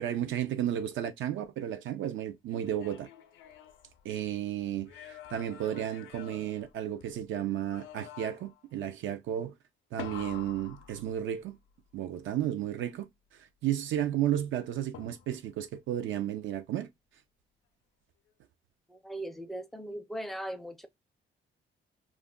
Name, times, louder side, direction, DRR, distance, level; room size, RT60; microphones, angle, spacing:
voice 1, 0.0-3.1 4.0-9.5 9.9-11.6 11.9-16.9, right 11 dB, 75° right, 0.5 m, -33 dB
sound 1, 2.5-4.4 4.8-7.2 7.7-8.6 10.0-11.6 14.9-15.6, left 10 dB, 80° left, 0.5 m, -48 dB
voice 2, 18.9-20.9, right 1 dB, ahead, 0.4 m, -39 dB
2.4 x 2.1 x 3.5 m
cardioid pair, 90°, 20 cm